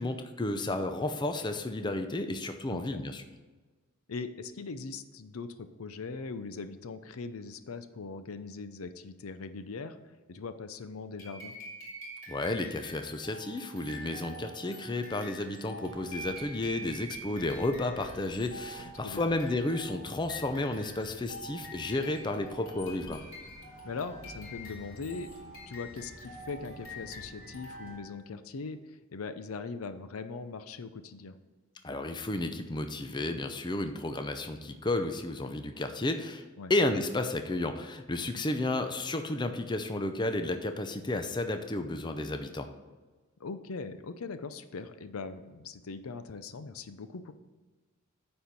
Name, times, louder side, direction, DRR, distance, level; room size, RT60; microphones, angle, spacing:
voice 1, 0.0-3.2 12.3-23.2 31.8-36.4 36.7-42.7, left 2 dB, 20° left, 7 dB, 0.5 m, -32 dB
voice 2, 2.7-3.0 4.1-10.0 10.3-11.5 18.8-19.2 23.8-31.4 36.6-36.7 38.3-38.5 43.4-47.3, left 4 dB, 85° left, 11 dB, 0.6 m, -41 dB
sound 1, 11.2-28.2, equal, 65° left, 2.5 m, -46 dB
sound 2, 15.8-28.0, left 1 dB, 40° left, 1.4 m, -53 dB
9.4 x 4.4 x 5.3 m, 1.3 s
head